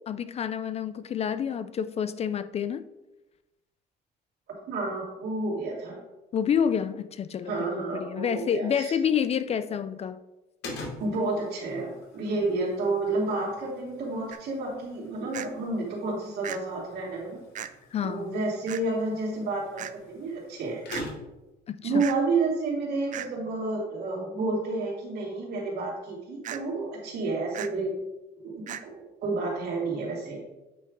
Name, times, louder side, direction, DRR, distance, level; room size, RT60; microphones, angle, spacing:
voice 1, 0.1-2.9 6.3-10.2 17.9-18.4 21.7-22.0, left 8 dB, 40° left, 0.4 m, -28 dB
voice 2, 4.7-6.0 7.5-8.9 11.0-17.4 18.0-20.8 21.8-27.9 28.6-30.4, right 3 dB, 70° right, 2.7 m, -30 dB
sound 1, 10.6-21.5, left 2 dB, 85° left, 2.1 m, -45 dB
sound 2, 14.3-14.4 15.3-15.5 16.4-16.6 17.6-17.7 18.7-18.8 19.8-19.9 20.9-21.1 22.0-22.2 23.1-23.3 26.4-26.6 27.5-27.7 28.7-28.8, right 10 dB, 50° right, 0.5 m, -36 dB
8.4 x 3.4 x 5.1 m
cardioid pair, 110°, 17 cm